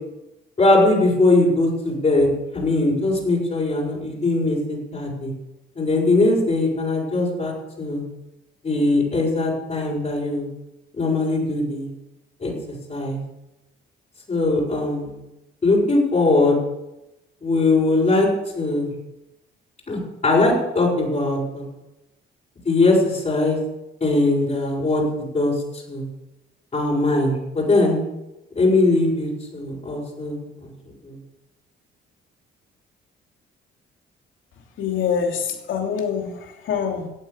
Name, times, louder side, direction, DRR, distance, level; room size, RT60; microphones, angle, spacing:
voice 1, 0.6-2.3 2.5-5.3 5.7-8.0 8.6-10.5 10.9-11.9 12.4-13.2 14.3-15.2 15.6-16.6 17.4-18.3 18.5-18.9 19.9-21.6 22.6-23.6 24.0-26.1 26.7-28.0 28.5-30.7 31.0-31.2, left 2 dB, 35° left, -5 dB, 6.5 m, -20 dB
voice 2, 34.8-37.1, left 7 dB, 80° left, 2 dB, 3.1 m, -25 dB
16.0 x 9.0 x 6.9 m, 0.94 s
cardioid pair, 90°, 20 cm